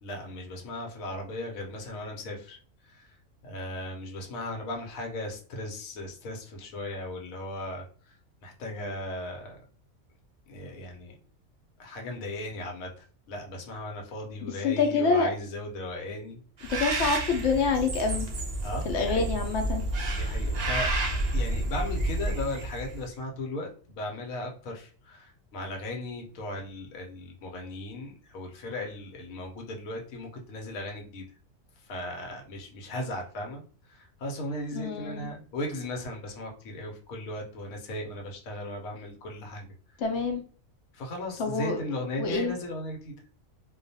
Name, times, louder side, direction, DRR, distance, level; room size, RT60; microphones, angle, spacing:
voice 1, 0.0-9.6 10.5-11.2 11.8-16.4 18.6-19.3 20.1-31.3 31.8-39.7 40.9-43.2, left 1 dB, 85° left, 1 dB, 1.1 m, -37 dB
voice 2, 14.6-15.3 16.7-18.3 18.9-19.8 34.7-35.3 40.0-40.4 41.4-41.8 42.2-42.6, left 4 dB, 65° left, 4 dB, 0.8 m, -26 dB
Bird, 16.6-23.0, right 2 dB, 65° right, 0.4 m, -30 dB
2.4 x 2.2 x 2.6 m, 0.42 s
omnidirectional pair, 1.4 m